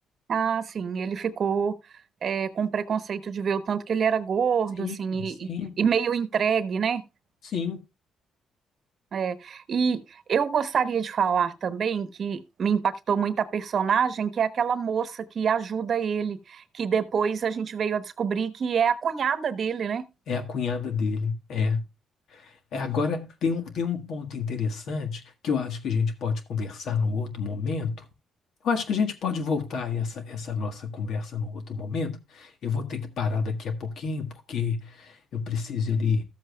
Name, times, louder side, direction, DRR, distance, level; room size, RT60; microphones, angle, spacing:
voice 1, 0.3-1.8 2.2-5.5 5.8-7.0 9.1-20.0, right 7 dB, 55° right, 0.9 m, -26 dB
voice 2, 4.8-5.7 7.4-7.8 20.3-21.8 22.3-28.0 28.6-36.2, left 5 dB, 70° left, 1.6 m, -29 dB
14.0 x 7.7 x 2.3 m
cardioid pair, 90°, 0 cm